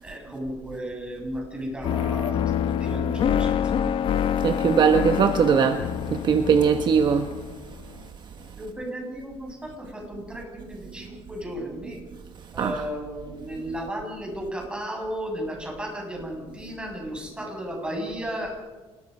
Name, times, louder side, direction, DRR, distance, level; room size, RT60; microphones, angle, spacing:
voice 1, 0.0-2.5 2.8-3.9 8.6-12.0 12.5-18.5, equal, 10° right, 7.5 m, -34 dB
sound 1, 1.8-7.9, left 9 dB, 55° left, 1.0 m, -26 dB
voice 2, 4.4-5.8 6.1-7.3 12.6-12.8, right 6 dB, 45° right, 1.1 m, -20 dB
27.5 x 20.5 x 5.5 m
cardioid pair, 140°, 11 cm